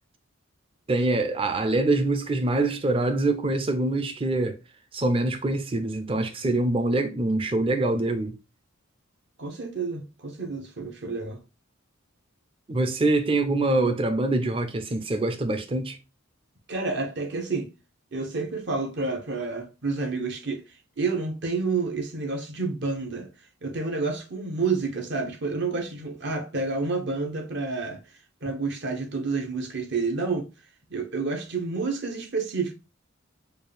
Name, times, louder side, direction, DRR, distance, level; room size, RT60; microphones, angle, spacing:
voice 1, 0.9-4.6 4.9-8.3 12.7-16.0, right 2 dB, 25° right, 0.5 m, -24 dB
voice 2, 9.4-11.4 16.7-17.7 18.1-23.3 23.6-28.0 28.4-30.5 30.9-32.7, right 4 dB, 55° right, 0.9 m, -29 dB
4.5 x 2.4 x 3.3 m
head